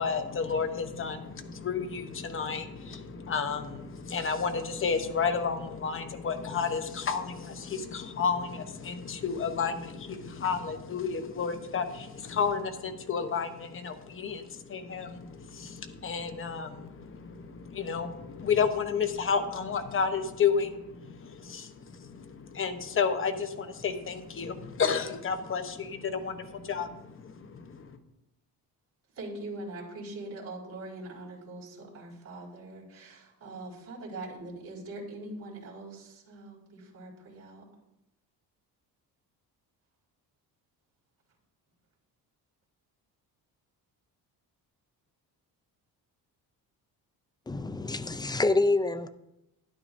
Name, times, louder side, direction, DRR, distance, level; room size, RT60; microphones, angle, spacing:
voice 1, 0.0-28.0, left 6 dB, 35° left, 7 dB, 0.9 m, -31 dB
voice 2, 29.2-37.6, right 2 dB, 40° right, -5 dB, 4.5 m, -42 dB
voice 3, 47.5-49.1, left 2 dB, 10° left, 11 dB, 0.3 m, -27 dB
12.5 x 10.5 x 2.6 m, 0.87 s
cardioid pair, 135°, 38 cm